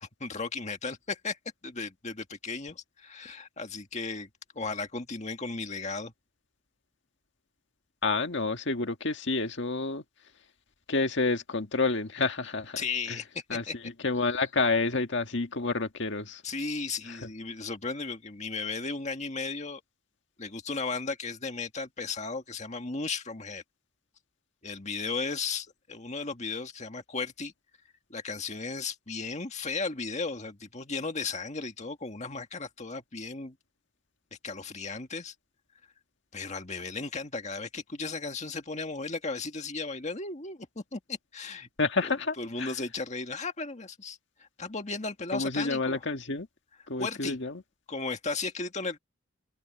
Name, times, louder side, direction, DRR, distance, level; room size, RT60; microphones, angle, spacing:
voice 1, 0.0-1.4 1.6-4.3 4.6-6.1 12.8-13.8 14.3-14.4 16.4-19.8 20.4-23.6 24.6-27.5 28.1-33.6 34.4-35.3 36.3-41.7 42.0-46.0 47.0-47.4 47.9-49.0, left 4 dB, 35° left, 1.8 m, -35 dB
voice 2, 8.0-10.0 10.9-12.8 13.1-13.2 13.5-13.6 14.0-16.4 41.8-42.7 45.3-46.5 46.9-47.6, left 3 dB, 60° left, 1.8 m, -29 dB
open air
head